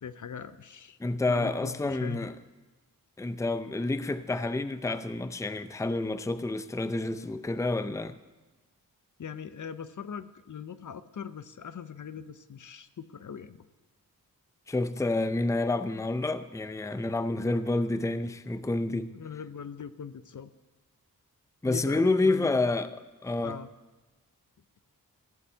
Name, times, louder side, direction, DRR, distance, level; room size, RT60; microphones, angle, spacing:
voice 1, 0.0-1.0 1.3-2.3 9.2-13.7 19.1-20.5 21.7-22.7 23.4-23.7, left 7 dB, 55° left, 0.7 m, -41 dB
voice 2, 1.0-2.3 3.2-8.1 14.7-19.1 21.6-22.9 23.2-23.6, left 2 dB, 10° left, 0.6 m, -29 dB
14.5 x 5.5 x 8.2 m
cardioid pair, 60°, 36 cm